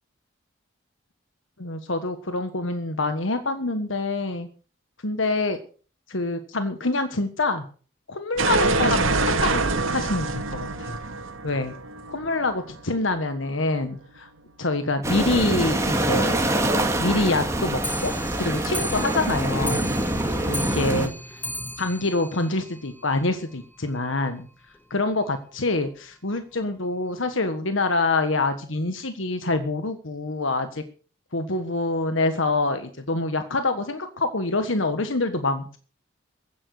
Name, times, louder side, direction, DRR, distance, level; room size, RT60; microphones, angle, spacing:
voice 1, 1.6-4.5 5.0-5.6 6.1-7.6 8.1-9.0 9.4-11.0 11.4-11.7 12.1-14.3 14.6-16.4 17.0-19.9 20.5-21.4 21.8-24.5 24.9-30.8 31.3-35.8, left 2 dB, 80° left, 8 dB, 1.5 m, -26 dB
sound 1, 8.4-13.1, right 3 dB, 90° right, 2.3 m, -25 dB
sound 2, 15.0-21.1, right 1 dB, 15° right, 2.2 m, -25 dB
Clock, 17.8-23.3 23.6-23.7 24.0-24.1 24.4-24.5 24.7-24.8 25.5-25.6 26.3-26.4 27.1-27.2, left 1 dB, 10° left, 1.6 m, -36 dB
15.5 x 10.5 x 6.6 m, 0.40 s
head